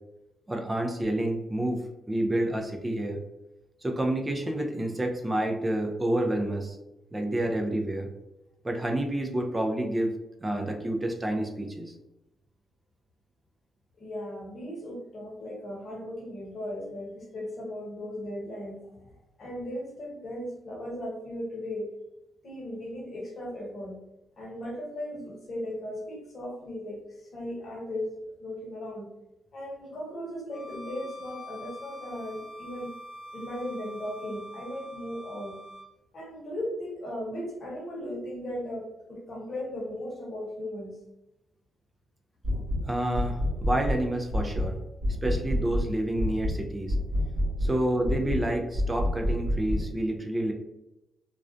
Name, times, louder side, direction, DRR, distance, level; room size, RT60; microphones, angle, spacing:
voice 1, 0.5-3.2 3.8-6.8 7.1-8.1 8.6-10.1 10.4-11.9 42.8-44.8 45.2-47.0 47.6-50.5, right 1 dB, 20° right, 3 dB, 0.4 m, -29 dB
voice 2, 14.0-21.9 22.4-23.9 24.4-29.1 29.5-32.9 33.3-35.6 36.1-41.0, left 1 dB, 45° left, -2 dB, 0.9 m, -37 dB
Bowed string instrument, 30.5-35.9, equal, 80° left, 0.5 m, -44 dB
sound 1, 42.4-42.8 43.1-44.0 44.3-44.7 45.0-45.9 46.2-46.6 46.9-47.7 48.0-48.4 48.7-49.8, equal, 40° right, 1.1 m, -27 dB
2.4 x 2.1 x 2.5 m, 0.94 s
cardioid pair, 80°, 0 cm